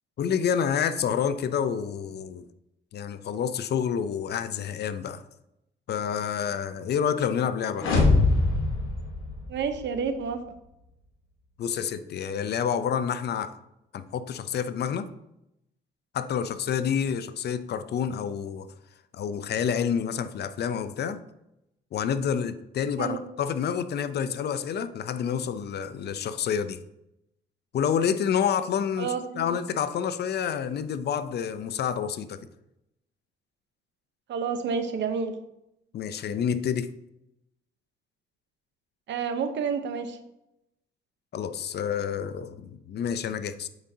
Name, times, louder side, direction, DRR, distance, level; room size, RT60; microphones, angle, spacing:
voice 1, 0.2-2.4 2.9-5.2 5.9-7.9 11.6-13.5 13.9-15.1 16.1-18.7 19.1-21.2 21.9-26.8 27.7-32.4 35.9-36.9 41.3-43.7, left 8 dB, 55° left, 12 dB, 0.5 m, -28 dB
sound 1, 7.8-9.9, left 3 dB, 85° left, 1.3 m, -23 dB
voice 2, 9.5-10.4 23.0-23.2 29.0-29.5 34.3-35.3 39.1-40.2, right 6 dB, 65° right, 8 dB, 0.8 m, -29 dB
7.9 x 5.0 x 2.8 m, 0.85 s
cardioid pair, 90°, 20 cm